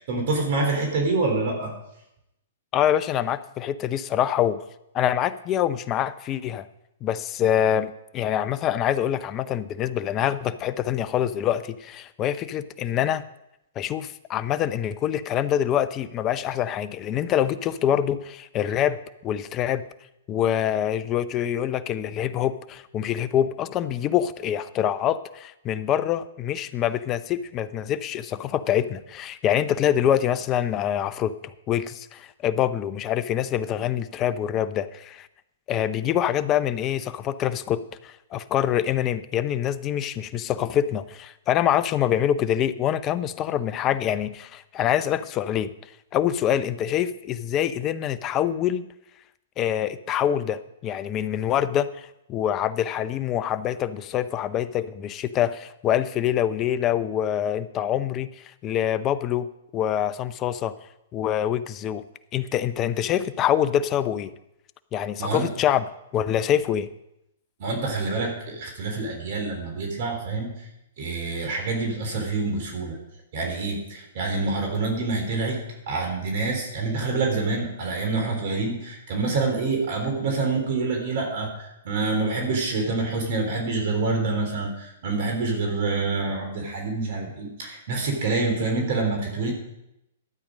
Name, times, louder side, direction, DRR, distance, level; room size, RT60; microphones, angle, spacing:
voice 1, 0.0-1.7 65.2-65.5 67.6-70.7 71.0-73.0 73.3-75.6 75.9-89.5, right 3 dB, 55° right, 2 dB, 3.5 m, -26 dB
voice 2, 2.7-4.6 4.9-6.7 7.0-13.2 13.8-19.0 19.2-19.8 20.3-35.3 35.7-45.7 46.1-48.9 49.6-59.5 59.7-60.7 61.1-62.0 62.3-64.3 64.9-65.8 66.1-66.9, left 10 dB, 30° left, 14 dB, 0.6 m, -25 dB
12.5 x 8.6 x 5.2 m, 0.86 s
hypercardioid pair, 120°, 0 cm